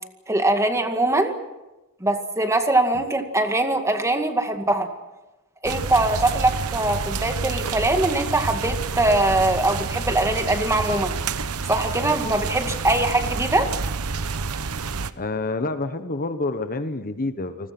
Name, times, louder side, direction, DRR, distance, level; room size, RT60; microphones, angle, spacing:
voice 1, 0.3-1.3 2.0-4.9 5.6-11.2 11.7-13.7, right 2 dB, 15° right, 5 dB, 2.1 m, -22 dB
sound 1, 5.6-15.1, right 4 dB, 85° right, 1.0 m, -28 dB
voice 2, 15.2-17.7, left 2 dB, 40° left, 9 dB, 1.2 m, -28 dB
29.5 x 20.5 x 6.1 m, 1.0 s
head